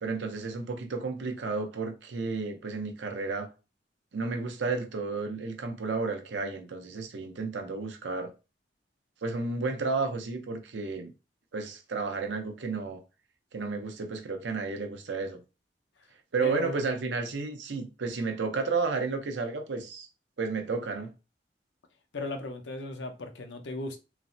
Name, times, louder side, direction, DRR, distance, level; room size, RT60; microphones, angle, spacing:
voice 1, 0.0-3.5 4.1-8.3 9.2-11.1 11.5-13.0 13.5-15.4 16.3-20.1 20.4-21.1, right 4 dB, 90° right, 0.6 m, -32 dB
voice 2, 16.4-16.8 22.1-24.0, left 2 dB, 85° left, 0.6 m, -36 dB
3.2 x 2.0 x 2.6 m
head